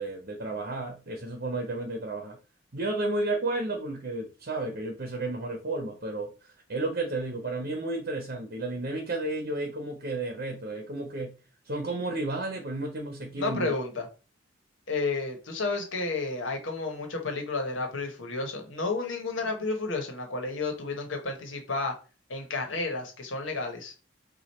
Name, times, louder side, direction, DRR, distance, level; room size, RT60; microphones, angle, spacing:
voice 1, 0.0-2.4 2.7-6.3 6.7-11.3 11.7-13.7, right 2 dB, 50° right, 3 dB, 0.9 m, -32 dB
voice 2, 13.4-14.1 14.9-21.9 22.3-23.9, left 3 dB, 80° left, 4 dB, 1.3 m, -31 dB
5.0 x 2.5 x 4.2 m, 0.34 s
head